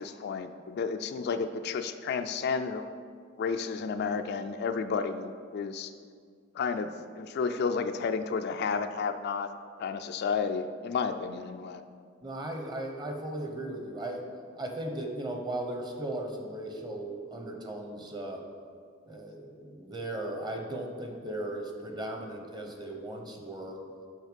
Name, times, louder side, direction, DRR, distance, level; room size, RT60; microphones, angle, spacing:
voice 1, 0.0-2.8 3.4-5.9 6.5-9.5 9.8-11.8, left 5 dB, 55° left, 8 dB, 0.3 m, -31 dB
voice 2, 12.2-14.2 14.6-18.4 19.0-23.8, right 1 dB, 20° right, 3 dB, 0.8 m, -37 dB
6.3 x 5.7 x 5.2 m, 2.1 s
head